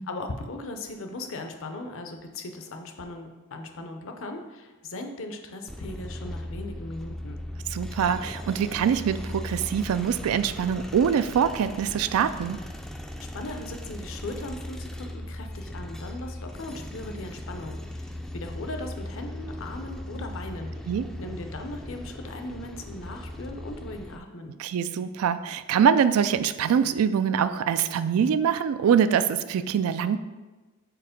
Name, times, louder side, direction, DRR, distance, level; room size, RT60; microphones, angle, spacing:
voice 1, 0.1-7.4 13.2-20.7 21.2-24.6, left 2 dB, 65° left, 5 dB, 0.7 m, -38 dB
sound 1, 5.7-24.2, left 1 dB, ahead, 0.3 m, -38 dB
voice 2, 7.7-12.6 20.9-21.1 24.6-30.2, right 7 dB, 90° right, 13 dB, 0.3 m, -24 dB
4.7 x 4.1 x 5.1 m, 1.2 s
head